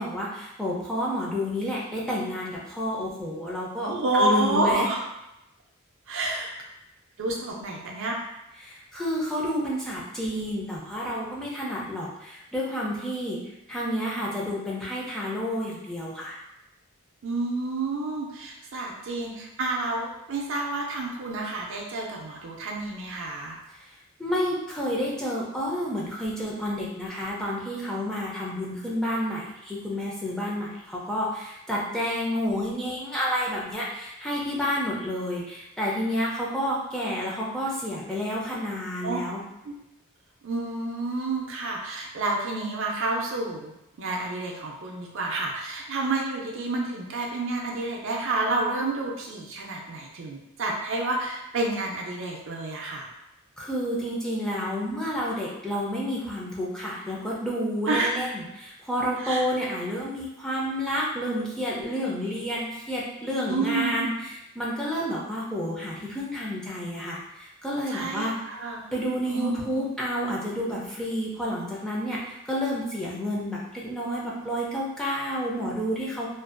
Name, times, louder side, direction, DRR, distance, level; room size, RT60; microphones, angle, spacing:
voice 1, 0.0-4.8 8.6-13.4 13.7-16.4 23.7-23.9 24.2-39.4 53.6-68.5 68.9-76.3, equal, 5° left, -6 dB, 0.4 m, -30 dB
voice 2, 3.9-5.0 6.1-6.5 7.2-8.2 17.2-23.6 39.0-39.2 39.7-39.8 40.4-43.7 44.0-53.1 57.9-58.1 59.2-59.4 63.5-64.1 67.9-68.8 69.3-69.8, right 2 dB, 60° right, 0 dB, 0.4 m, -29 dB
2.5 x 2.2 x 2.4 m, 0.89 s
head